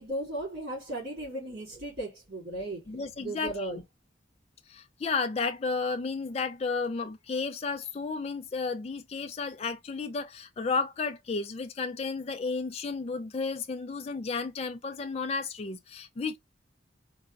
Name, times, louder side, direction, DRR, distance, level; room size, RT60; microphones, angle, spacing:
voice 1, 0.0-2.8 3.2-3.8, right 1 dB, 55° right, 2.6 m, -36 dB
voice 2, 2.9-3.8 4.7-16.4, left 4 dB, 30° left, 0.3 m, -32 dB
3.9 x 2.2 x 2.4 m
head